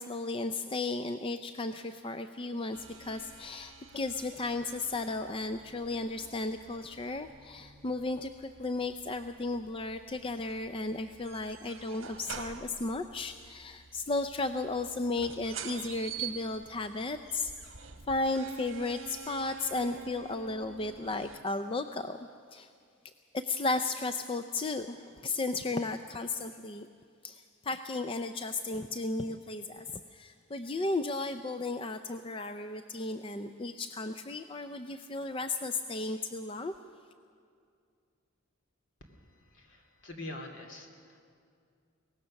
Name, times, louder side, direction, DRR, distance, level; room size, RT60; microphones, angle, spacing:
voice 1, 0.0-17.5 18.1-22.7 23.0-26.9 27.2-36.7, left 2 dB, 25° left, 9 dB, 0.4 m, -34 dB
sound 1, 2.7-21.4, right 6 dB, 65° right, 1.4 m, -48 dB
voice 2, 39.3-41.2, left 2 dB, 60° left, 3 dB, 2.6 m, -45 dB
23.0 x 18.5 x 6.5 m, 2.3 s
head